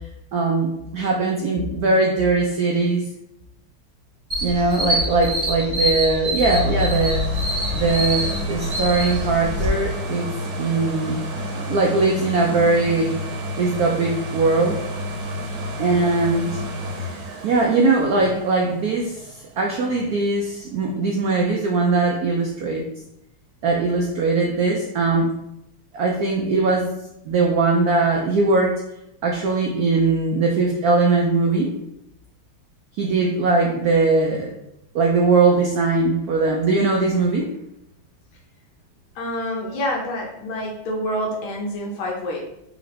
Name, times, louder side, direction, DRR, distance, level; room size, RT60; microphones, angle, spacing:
voice 1, 0.3-3.0 4.4-7.2 7.7-10.3 10.6-11.2 11.5-14.8 15.8-16.6 17.4-22.8 23.6-25.3 25.9-26.9 27.3-28.8 29.2-31.7 33.0-34.5 34.9-37.5, right 3 dB, 90° right, -1 dB, 0.8 m, -20 dB
sound 1, 4.3-9.7, equal, 25° right, 0.9 m, -25 dB
sound 2, 6.5-20.2 20.7-20.8, left 1 dB, 60° right, 1.2 m, -30 dB
voice 2, 39.2-42.4, equal, 75° left, -1 dB, 1.6 m, -27 dB
4.2 x 2.9 x 4.2 m, 0.82 s
omnidirectional pair, 2.3 m